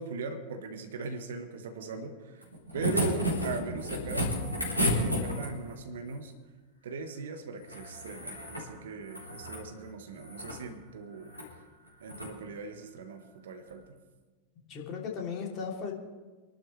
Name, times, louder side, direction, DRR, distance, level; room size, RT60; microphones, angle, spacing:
voice 1, 0.0-2.5 2.7-4.3 4.7-6.3 6.8-11.4 12.0-14.0, right 4 dB, 60° right, 7 dB, 1.5 m, -39 dB
sound 1, 2.4-5.7 7.6-8.7 9.0-9.6 10.2-10.6 11.3-11.5 12.0-12.3 13.7-13.8, equal, 90° right, 3.8 m, -32 dB
voice 2, 14.7-15.9, left 6 dB, 35° left, -1 dB, 3.2 m, -36 dB
26.5 x 12.0 x 3.4 m, 1.3 s
figure-of-eight pair, 90°, 0 cm